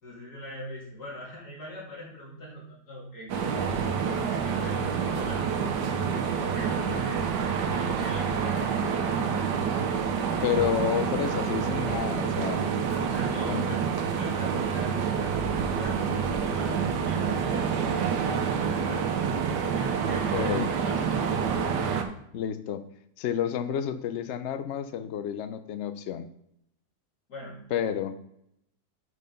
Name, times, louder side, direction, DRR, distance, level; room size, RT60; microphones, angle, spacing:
voice 1, 0.0-3.3 3.6-7.2 7.7-8.8 13.0-13.8 14.1-16.0 16.4-21.4 27.3-27.6, left 1 dB, 60° left, -4 dB, 3.2 m, -42 dB
sound 1, 3.3-22.0, right 6 dB, 75° right, 1.4 m, -28 dB
voice 2, 10.4-12.7 13.5-13.6 20.1-20.7 22.3-22.8 23.2-26.3 27.7-28.2, left 9 dB, 80° left, 11 dB, 0.6 m, -30 dB
6.4 x 5.5 x 5.3 m, 0.74 s
omnidirectional pair, 1.9 m